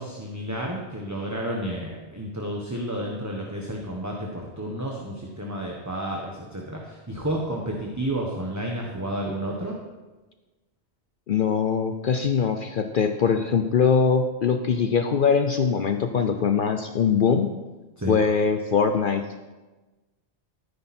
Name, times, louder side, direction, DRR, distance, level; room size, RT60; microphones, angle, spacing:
voice 1, 0.0-9.8 18.0-18.2, right 1 dB, 15° right, -1 dB, 1.4 m, -31 dB
voice 2, 11.3-17.5 18.1-19.4, left 6 dB, 55° left, 7 dB, 0.8 m, -22 dB
15.0 x 9.7 x 4.4 m, 1.2 s
omnidirectional pair, 1.1 m